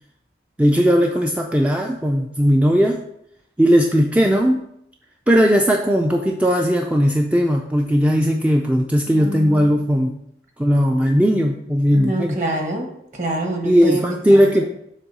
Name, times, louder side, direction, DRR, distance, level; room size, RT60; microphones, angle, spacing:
voice 1, 0.6-3.0 3.6-4.6 5.3-10.1 10.6-12.4 13.6-14.7, equal, 10° right, 2 dB, 0.3 m, -17 dB
voice 2, 9.1-9.8 11.9-14.0 14.3-14.7, right 1 dB, 40° right, 2 dB, 1.2 m, -27 dB
7.3 x 3.1 x 5.4 m, 0.75 s
head